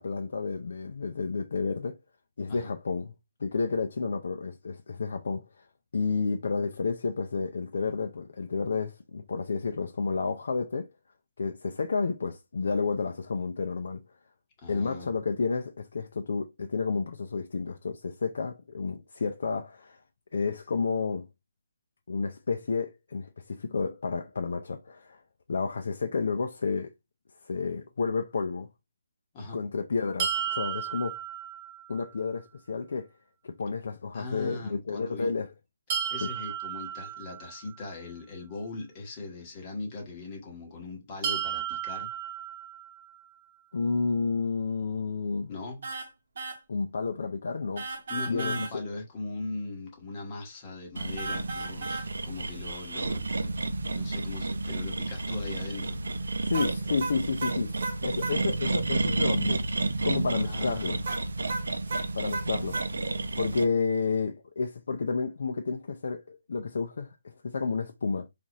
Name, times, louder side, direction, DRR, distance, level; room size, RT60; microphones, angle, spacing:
voice 1, 0.0-2.0 2.4-3.1 3.4-5.6 5.9-10.9 11.4-14.0 14.7-20.0 20.3-21.3 22.1-25.2 25.5-26.9 27.4-28.7 29.5-31.2 31.9-33.1 33.4-35.5 36.2-36.3 43.7-45.5 46.7-47.9 48.3-48.6 56.4-59.6 60.0-61.0 62.1-62.8 63.4-68.3, left 4 dB, 65° left, 0.5 m, -31 dB
voice 2, 14.6-15.1 29.3-29.6 34.1-35.3 35.9-42.1 45.5-45.8 48.1-56.3 60.4-61.1, left 3 dB, 25° left, 1.1 m, -39 dB
sound 1, 30.2-32.2 35.9-38.0 41.2-43.3, right 8 dB, 25° right, 0.5 m, -34 dB
sound 2, 45.8-46.1 46.4-46.6 47.8-48.7 51.2-52.1 56.5-58.4 61.0-62.9, right 3 dB, 55° right, 0.9 m, -34 dB
sound 3, 51.0-63.6, right 2 dB, 85° right, 0.5 m, -31 dB
4.0 x 2.5 x 2.9 m
hypercardioid pair, 165°, 0 cm